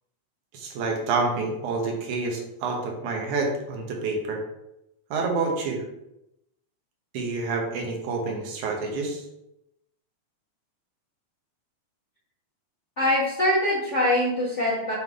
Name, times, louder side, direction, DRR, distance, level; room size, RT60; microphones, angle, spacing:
voice 1, 0.5-4.4 5.1-5.8 7.1-9.2, right 3 dB, 75° right, 1 dB, 2.5 m, -28 dB
voice 2, 13.0-14.9, left 1 dB, 60° left, -7 dB, 0.7 m, -23 dB
7.3 x 3.8 x 3.5 m, 0.88 s
omnidirectional pair, 3.5 m